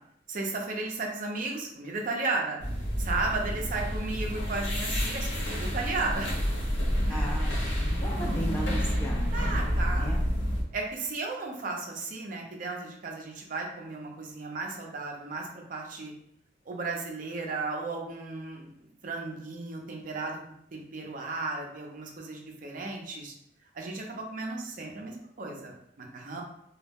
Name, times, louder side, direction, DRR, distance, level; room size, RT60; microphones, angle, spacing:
voice 1, 0.3-2.6 3.0-6.3 7.1-7.3 9.3-10.2 10.7-16.1 16.7-18.7 19.0-20.4 20.7-23.3 23.7-26.4, right 3 dB, 45° right, 0 dB, 0.5 m, -34 dB
sound 1, 2.6-10.6, equal, 85° left, 0.7 m, -29 dB
voice 2, 7.1-10.2, equal, 10° left, -1 dB, 0.3 m, -37 dB
2.3 x 2.0 x 3.3 m, 0.73 s
head